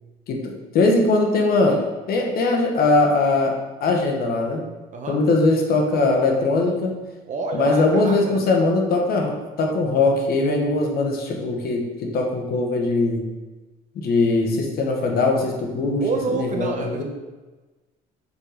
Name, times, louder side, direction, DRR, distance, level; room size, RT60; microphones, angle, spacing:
voice 1, 0.3-1.8 2.1-4.6 5.1-7.0 7.5-13.3 13.9-16.0 16.3-17.0, left 3 dB, 65° left, 1 dB, 1.2 m, -21 dB
voice 2, 7.3-8.4 16.0-17.0, right 3 dB, 45° right, 3 dB, 1.0 m, -28 dB
5.5 x 4.8 x 3.9 m, 1.2 s
cardioid pair, 110°, 17 cm